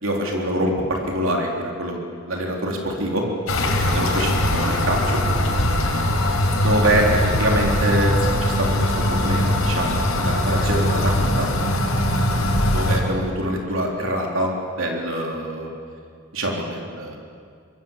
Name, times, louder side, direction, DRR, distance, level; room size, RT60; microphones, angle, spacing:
voice 1, 0.0-3.3 3.9-5.2 6.6-11.5 12.7-15.7 16.3-17.2, right 1 dB, 70° right, 0 dB, 3.7 m, -25 dB
sound 1, 3.5-13.0, left 1 dB, 80° left, 4.2 m, -21 dB
25.0 x 22.0 x 7.4 m, 2.2 s
head